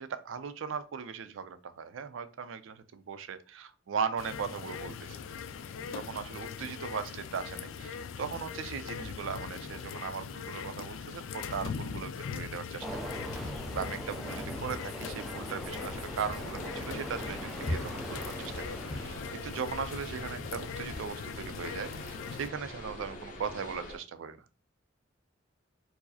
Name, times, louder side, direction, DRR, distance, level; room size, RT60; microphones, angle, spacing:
voice 1, 0.0-5.2 5.8-18.6 18.9-24.4, right 6 dB, 80° right, 11 dB, 0.4 m, -38 dB
sound 1, 4.2-22.5, left 6 dB, 85° left, 0.3 m, -41 dB
Train, 12.8-19.5, equal, ahead, 0.4 m, -41 dB
sound 2, 15.6-24.0, left 1 dB, 40° left, 0.6 m, -42 dB
4.6 x 2.0 x 2.7 m, 0.34 s
head